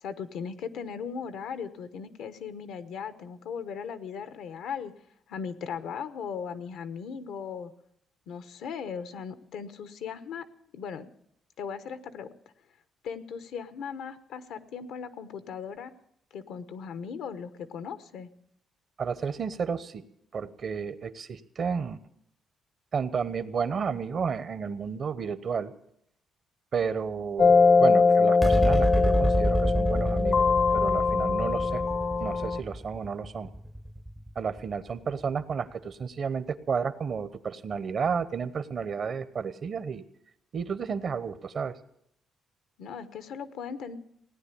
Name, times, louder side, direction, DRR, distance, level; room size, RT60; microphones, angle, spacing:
voice 1, 0.0-4.9 5.3-7.7 8.3-10.5 10.7-11.1 11.6-12.3 13.0-15.9 16.3-18.3 42.8-44.0, left 6 dB, 80° left, 12 dB, 1.0 m, -38 dB
voice 2, 19.0-20.0 20.3-22.0 22.9-25.7 26.7-30.4 30.7-31.8 32.2-33.5 34.3-40.0 40.5-41.8, right 6 dB, 55° right, 14 dB, 0.9 m, -32 dB
sound 1, 27.4-32.6, left 4 dB, 45° left, 0.7 m, -22 dB
sound 2, 28.4-35.1, right 1 dB, 5° right, 0.6 m, -29 dB
17.5 x 9.8 x 8.4 m, 0.73 s
cardioid pair, 90°, 0 cm